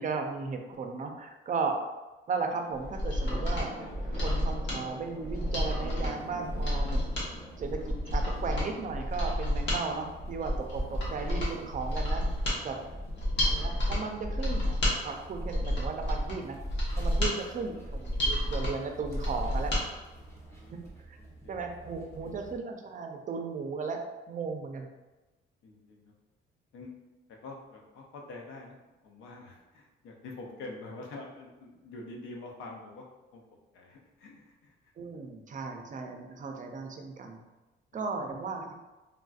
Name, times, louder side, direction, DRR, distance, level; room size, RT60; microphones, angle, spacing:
voice 1, 0.0-1.7 2.3-3.7 4.1-7.0 7.6-12.2 12.6-12.8 13.4-16.6 17.0-19.7 20.7-20.8 21.1-21.2 21.5-24.0 24.3-24.9 35.0-37.4 37.9-38.7, right 4 dB, 40° right, 3 dB, 0.5 m, -36 dB
sound 1, 2.3-18.6, left 1 dB, 35° left, 1.1 m, -48 dB
Mechanisms, 2.8-19.8 20.2-20.3, equal, 65° left, 1.2 m, -31 dB
sound 2, 5.6-22.6, right 2 dB, 15° left, 1.0 m, -51 dB
voice 2, 12.8-13.3 17.1-17.4 20.1-20.8 21.2-21.6 22.2-22.3 25.6-26.1 26.7-26.9 27.4-28.8 29.0-33.1 33.3-33.4 33.7-34.7 37.9-38.0, left 2 dB, 85° left, 0 dB, 0.7 m, -46 dB
3.5 x 2.5 x 2.4 m, 1.1 s
cardioid pair, 90°, 20 cm